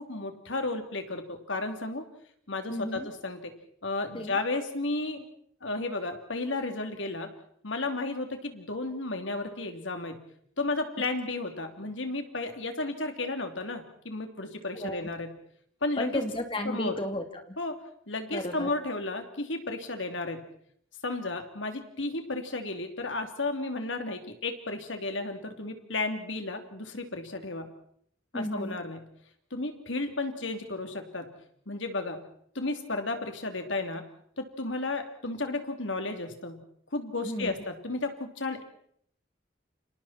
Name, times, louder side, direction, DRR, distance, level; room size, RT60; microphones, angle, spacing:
voice 1, 0.0-2.0 2.5-3.5 3.8-5.3 5.6-7.3 7.6-10.2 10.6-15.3 15.8-16.2 16.6-16.9 17.6-17.8 18.1-20.4 21.0-27.7 28.3-29.0 29.5-31.3 31.7-32.2 32.5-34.1 34.4-36.6 36.9-38.6, left 2 dB, 85° left, 6 dB, 3.2 m, -33 dB
voice 2, 2.7-3.1 4.1-4.4 14.7-15.1 16.0-17.6 18.3-18.7 28.3-28.8 37.2-37.5, left 1 dB, 25° left, 5 dB, 3.0 m, -33 dB
30.0 x 27.0 x 4.4 m, 0.65 s
head